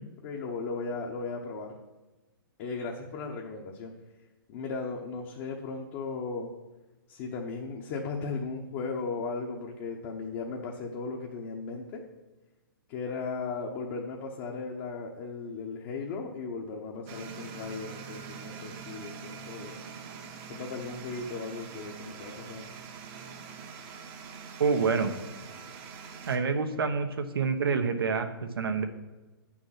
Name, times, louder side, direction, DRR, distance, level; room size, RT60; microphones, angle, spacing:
voice 1, 0.2-1.8 2.6-3.9 4.5-6.5 7.1-12.0 12.9-19.8 20.5-22.6, left 4 dB, 30° left, 0 dB, 0.9 m, -36 dB
sound 1, 17.1-26.4, right 6 dB, 25° right, 0.9 m, -44 dB
voice 2, 24.6-25.1 26.3-28.8, right 5 dB, 85° right, 7 dB, 1.2 m, -27 dB
8.4 x 6.3 x 5.8 m, 1.2 s
hypercardioid pair, 160°, 12 cm